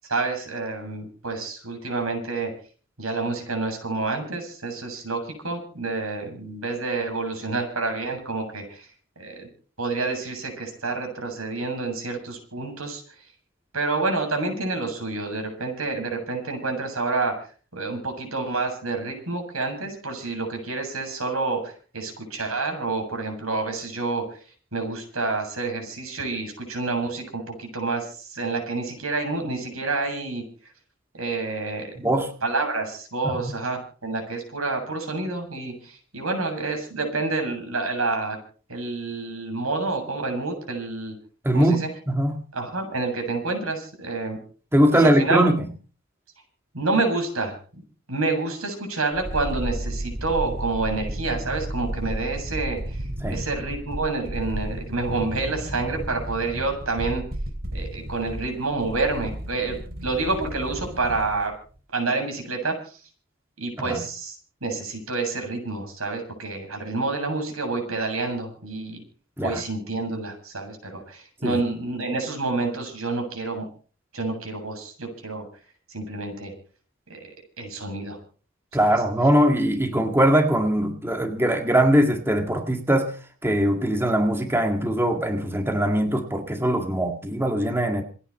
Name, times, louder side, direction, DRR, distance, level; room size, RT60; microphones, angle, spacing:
voice 1, 0.1-2.5 3.0-8.9 9.2-9.5 9.8-13.0 13.7-17.5 17.7-24.4 24.7-30.4 31.1-32.1 32.4-38.4 38.7-41.1 41.5-41.9 42.5-44.4 44.9-45.5 46.7-47.6 48.1-53.0 53.3-57.2 57.7-61.5 61.9-63.0 63.6-64.4 64.6-69.0 69.4-73.7 74.1-75.4 75.9-76.5 77.1-77.3 77.6-78.2 78.7-79.0, right 3 dB, 90° right, 4 dB, 7.7 m, -28 dB
voice 2, 32.0-32.3 33.2-33.4 41.4-42.4 44.7-45.7 53.2-53.4 63.8-64.0 69.4-69.6 71.4-71.6 78.7-83.1 83.4-88.0, right 1 dB, 10° right, 4 dB, 1.9 m, -21 dB
sound 1, 49.1-61.5 61.8-61.9, right 1 dB, 45° right, 3.5 m, -33 dB
27.5 x 9.9 x 4.3 m, 0.40 s
head